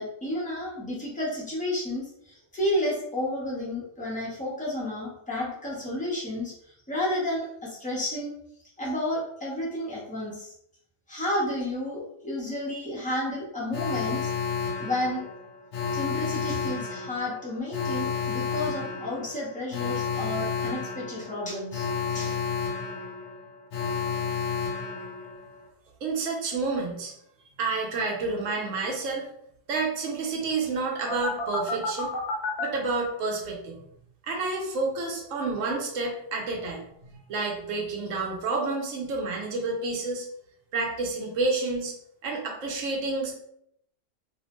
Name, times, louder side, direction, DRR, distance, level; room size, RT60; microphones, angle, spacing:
voice 1, 0.0-6.5 6.9-8.3 8.8-10.5 11.1-14.3 14.8-15.2 15.9-22.4, left 1 dB, 10° left, -6 dB, 0.5 m, -31 dB
Alarm, 13.7-25.6 31.1-32.6, left 5 dB, 70° left, 0.8 m, -31 dB
voice 2, 26.0-27.1 27.6-29.3 29.7-32.1 32.6-33.8 34.3-40.3 40.7-41.9 42.2-43.3, right 3 dB, 75° right, 0 dB, 1.0 m, -29 dB
2.6 x 2.1 x 2.9 m, 0.74 s
omnidirectional pair, 1.3 m